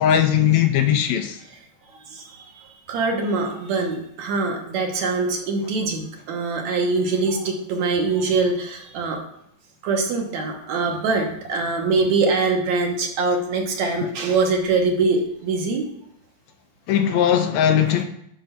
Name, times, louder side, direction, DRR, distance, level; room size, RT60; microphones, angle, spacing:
voice 1, 0.0-1.4 16.9-18.0, left 9 dB, 75° left, 1.7 m, -19 dB
voice 2, 2.9-9.2 9.8-15.9, right 3 dB, 70° right, 2.6 m, -23 dB
11.5 x 4.5 x 5.8 m
omnidirectional pair, 3.5 m